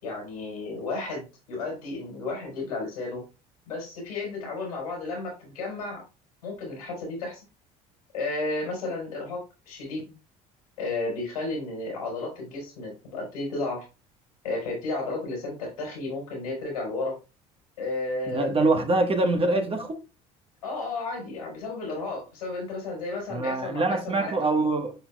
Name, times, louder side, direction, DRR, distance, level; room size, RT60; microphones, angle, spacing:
voice 1, 0.0-3.2 3.7-6.0 6.4-7.4 8.1-10.1 10.8-13.8 14.4-17.1 17.8-18.6 20.6-24.3, left 3 dB, 90° left, 4.3 m, -33 dB
voice 2, 18.3-20.0 23.3-24.9, right 2 dB, 30° right, 1.3 m, -24 dB
10.5 x 4.6 x 2.3 m
hypercardioid pair, 70°, 19 cm